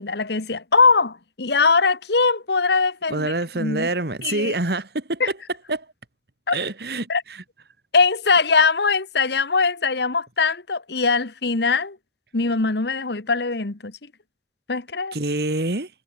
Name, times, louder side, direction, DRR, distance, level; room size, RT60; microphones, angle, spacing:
voice 1, 0.0-3.9 4.2-4.5 5.2-5.3 6.5-6.6 7.1-7.2 7.9-12.0 12.3-14.0 14.7-15.1, left 4 dB, 65° left, 1.3 m, -21 dB
voice 2, 3.1-5.2 5.7-5.9 6.5-7.4 15.1-15.9, right 2 dB, 60° right, 2.0 m, -26 dB
head